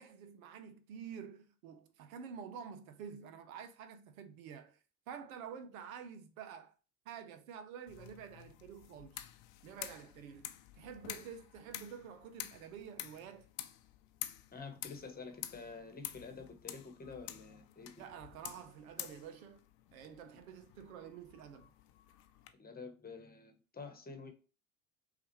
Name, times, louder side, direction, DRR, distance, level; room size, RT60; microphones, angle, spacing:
voice 1, 0.0-4.8 5.1-6.7 7.1-9.3 9.6-10.5 10.8-13.5 18.0-19.6 19.9-21.7, right 7 dB, 75° right, 0.7 m, -49 dB
sound 1, 7.9-22.5, left 13 dB, 60° left, 0.7 m, -49 dB
voice 2, 14.5-18.0 22.6-24.3, left 4 dB, 20° left, 1.1 m, -48 dB
5.7 x 2.5 x 3.1 m
hypercardioid pair, 70°, 42 cm